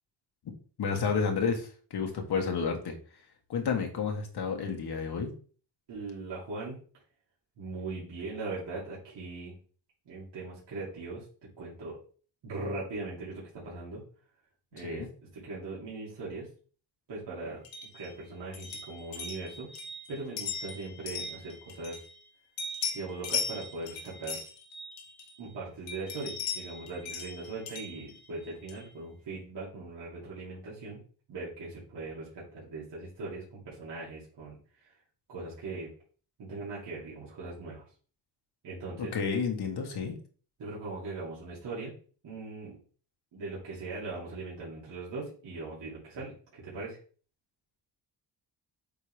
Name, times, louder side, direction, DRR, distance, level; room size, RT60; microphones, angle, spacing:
voice 1, 0.8-3.0 3.5-5.3 14.8-15.1 39.0-40.1, left 5 dB, 60° left, 3 dB, 1.7 m, -31 dB
voice 2, 5.9-6.8 7.6-9.5 10.1-11.2 11.6-12.0 12.4-14.0 14.7-15.1 15.3-16.5 17.1-17.6 17.9-19.7 20.1-22.1 22.9-24.4 25.4-31.0 31.3-34.9 35.3-35.9 36.4-37.8 38.6-39.1 40.6-41.9 42.2-42.8 43.3-47.0, right 3 dB, 70° right, -7 dB, 2.8 m, -40 dB
sound 1, 17.6-22.3 22.6-25.5 25.9-28.9, left 5 dB, 90° left, 1.7 m, -39 dB
8.4 x 3.7 x 3.5 m, 0.41 s
cardioid pair, 80°, 44 cm